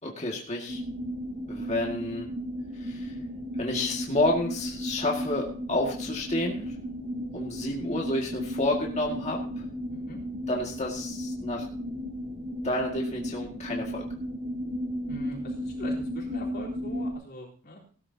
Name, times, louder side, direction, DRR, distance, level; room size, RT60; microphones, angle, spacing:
voice 1, 0.0-0.8 1.5-2.3 2.8-3.2 3.6-6.6 7.3-9.7 10.5-11.7 12.6-14.0, left 2 dB, 30° left, -1 dB, 2.1 m, -30 dB
sound 1, 0.7-17.1, equal, 25° right, 5.9 m, -34 dB
voice 2, 15.0-17.8, left 1 dB, 45° left, -4 dB, 3.8 m, -42 dB
18.5 x 12.5 x 2.9 m, 0.42 s
head